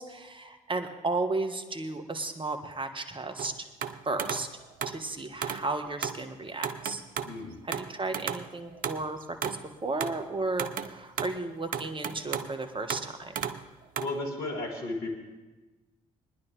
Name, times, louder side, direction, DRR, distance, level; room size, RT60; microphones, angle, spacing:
voice 1, 0.0-3.5 4.0-4.5 4.9-7.0 7.6-13.4, right 3 dB, 30° right, 6 dB, 1.4 m, -34 dB
sound 1, 3.4-5.0 5.4-5.7 6.0-6.3 6.6-7.4 7.7-9.7 10.0-10.3 10.6-11.4 11.7-12.5 12.9-13.1 13.4-13.6 14.0-14.1, right 8 dB, 50° right, 0.7 m, -34 dB
voice 2, 7.2-7.6 14.0-15.1, left 2 dB, 60° left, -1 dB, 2.0 m, -34 dB
20.5 x 10.5 x 3.3 m, 1.2 s
figure-of-eight pair, 45°, 18 cm